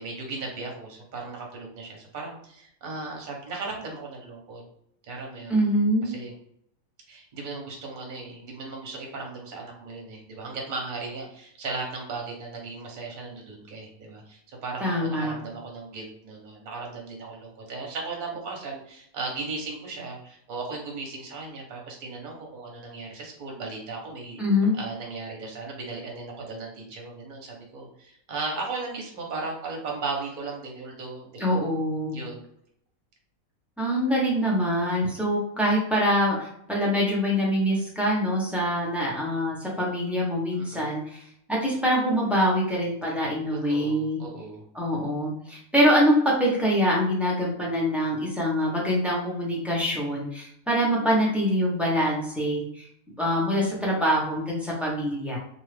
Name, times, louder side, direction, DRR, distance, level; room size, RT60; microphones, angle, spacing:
voice 1, 0.0-4.6 5.1-5.5 6.0-6.3 7.1-24.4 24.7-31.6 32.1-32.5 40.5-40.9 43.5-44.6, right 3 dB, 40° right, -1 dB, 0.8 m, -36 dB
voice 2, 5.5-6.2 14.8-15.3 24.4-24.8 31.4-32.2 33.8-41.2 41.5-44.2 44.7-52.9 53.2-55.4, equal, ahead, -5 dB, 0.5 m, -24 dB
2.7 x 2.4 x 3.2 m, 0.71 s
omnidirectional pair, 1.5 m